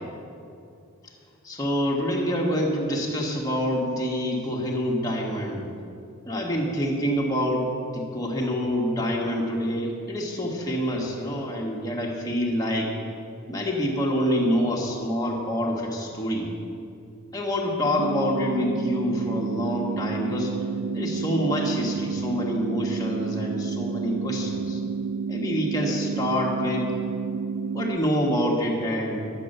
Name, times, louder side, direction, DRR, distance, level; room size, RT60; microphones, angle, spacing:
voice 1, 1.4-5.7 6.3-12.9 13.5-16.5 17.3-20.5 20.9-24.8 25.3-27.0 27.7-29.2, equal, 15° left, -2 dB, 1.5 m, -26 dB
sound 1, 18.0-28.0, right 5 dB, 60° right, 0.4 m, -30 dB
10.5 x 8.5 x 6.6 m, 2.5 s
head